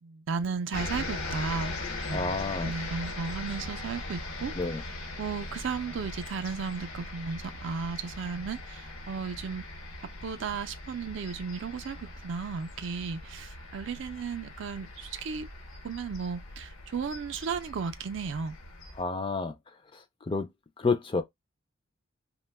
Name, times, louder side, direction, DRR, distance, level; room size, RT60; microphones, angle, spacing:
voice 1, 0.0-1.8 2.0-4.5 5.2-9.6 10.0-15.5 15.8-18.6, right 5 dB, 60° right, 0.4 m, -35 dB
sound 1, 0.7-19.0, left 2 dB, 85° left, 0.9 m, -40 dB
voice 2, 2.1-2.7 4.6-4.8 19.0-19.5 19.9-20.5 20.8-21.2, left 4 dB, 25° left, 0.3 m, -30 dB
2.8 x 2.2 x 3.3 m
head